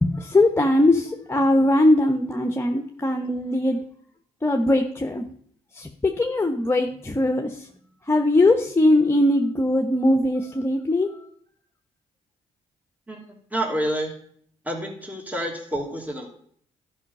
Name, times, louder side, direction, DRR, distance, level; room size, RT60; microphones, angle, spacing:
voice 1, 0.0-3.8 4.4-5.3 5.7-7.7 8.1-11.1, left 1 dB, 15° left, 4 dB, 1.0 m, -20 dB
voice 2, 13.5-14.1 14.6-16.3, right 1 dB, 10° right, 1 dB, 2.9 m, -28 dB
12.0 x 5.6 x 5.4 m, 0.62 s
supercardioid pair, 55°, 14 cm